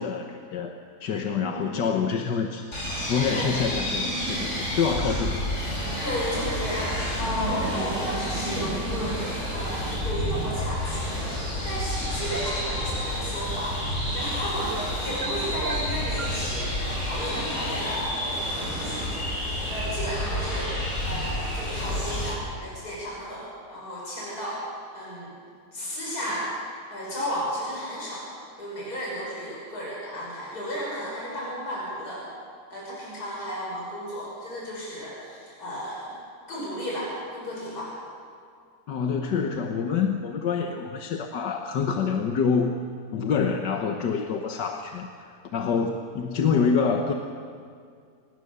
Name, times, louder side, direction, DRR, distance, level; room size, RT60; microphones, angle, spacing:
voice 1, 0.0-5.5 38.9-42.8 43.1-47.1, left 6 dB, 75° left, 4 dB, 1.7 m, -27 dB
voice 2, 1.3-1.8 3.3-3.5 6.0-9.2 9.5-13.8 14.1-20.8 21.0-24.6 24.9-25.3 25.7-26.5 26.9-28.3 28.6-32.2 32.7-36.2 36.5-37.9, equal, 60° left, -5 dB, 6.5 m, -33 dB
sound 1, 2.7-22.3, equal, 40° left, 6.7 m, -30 dB
sound 2, 12.3-12.7 14.7-15.3 15.6-16.4, right 4 dB, 45° right, 2.0 m, -35 dB
26.5 x 20.5 x 6.8 m, 2.2 s
omnidirectional pair, 1.9 m